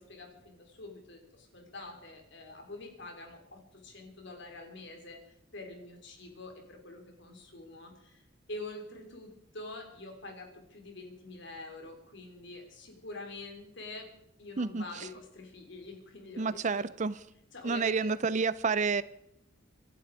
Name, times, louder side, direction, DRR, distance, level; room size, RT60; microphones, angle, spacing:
voice 1, 0.0-8.2 8.5-14.1 14.4-16.9 17.5-18.1, left 2 dB, 55° left, 3 dB, 3.8 m, -46 dB
voice 2, 16.4-17.1 17.6-19.0, right 4 dB, 35° right, 17 dB, 0.5 m, -29 dB
26.5 x 11.0 x 4.9 m, 0.79 s
head